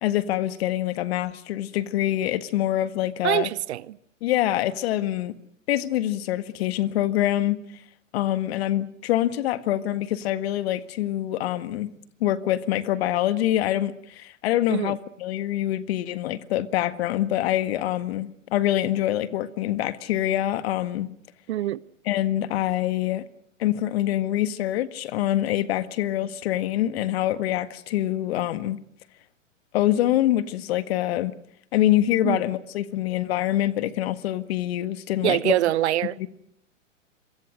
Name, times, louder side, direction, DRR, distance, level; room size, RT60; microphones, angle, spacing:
voice 1, 0.0-3.5 4.2-5.3 5.7-7.6 8.1-11.9 12.2-21.1 22.1-23.2 23.6-28.8 29.7-31.3 31.7-35.6 36.2-36.3, left 13 dB, 50° left, 1.8 m, -25 dB
voice 2, 3.2-4.0 14.7-15.0 21.5-21.8 32.2-32.4 35.2-36.1, right 14 dB, 55° right, 1.0 m, -24 dB
27.0 x 23.5 x 6.5 m
hypercardioid pair, 130°, 39 cm